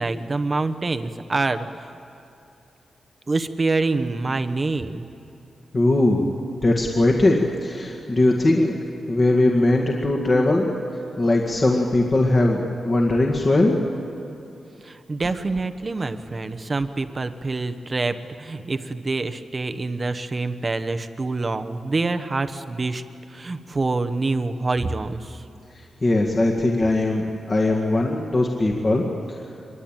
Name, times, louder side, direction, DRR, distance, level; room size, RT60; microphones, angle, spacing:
voice 1, 0.0-1.9 3.3-5.1 14.8-23.0 23.3-25.4, right 3 dB, 30° right, 8 dB, 1.0 m, -26 dB
voice 2, 5.7-6.2 6.6-8.8 9.1-10.7 11.2-13.8 26.0-29.0, left 2 dB, 30° left, 0 dB, 1.9 m, -20 dB
24.5 x 22.5 x 9.0 m, 2.7 s
wide cardioid pair, 150°, 0 cm